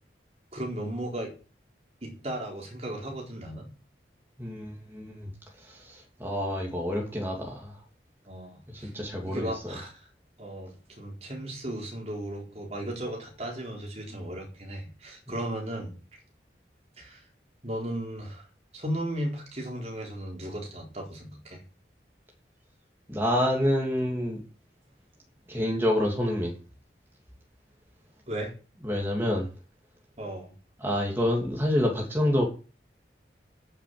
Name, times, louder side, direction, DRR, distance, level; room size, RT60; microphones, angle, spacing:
voice 1, 0.5-1.3 2.0-3.7 8.3-8.9 9.3-9.9 10.4-15.9 17.0-17.2 17.6-18.4 18.7-21.6 28.3-28.5 30.2-30.5, right 1 dB, 35° right, 4.1 m, -35 dB
voice 2, 4.4-5.3 5.6-7.8 8.7-9.7 14.1-14.2 23.1-24.4 25.5-26.5 28.8-29.5 30.8-32.4, left 1 dB, 15° right, 2.9 m, -28 dB
9.7 x 7.1 x 8.9 m
head